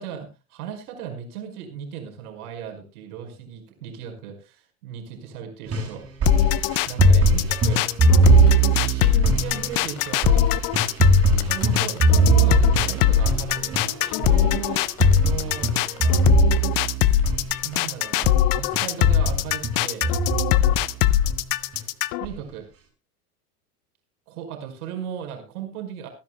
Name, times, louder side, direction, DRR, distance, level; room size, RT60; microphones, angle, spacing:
voice 1, 0.0-6.0 6.9-7.8 8.7-10.5 11.3-13.9 14.2-14.9 15.2-15.7 16.8-17.3 17.6-20.1 22.2-22.7 24.3-26.1, right 8 dB, 70° right, 4 dB, 5.1 m, -36 dB
sound 1, 5.7-17.9 18.2-18.4 18.7-20.9 21.2-21.8 22.2-22.3, right 4 dB, 30° right, 5.4 m, -21 dB
sound 2, 6.3-22.2, left 13 dB, 45° left, 0.8 m, -21 dB
sound 3, 8.1-18.1, left 9 dB, 70° left, 4.0 m, -44 dB
24.5 x 10.5 x 2.2 m, 0.28 s
hypercardioid pair, 95°, 46 cm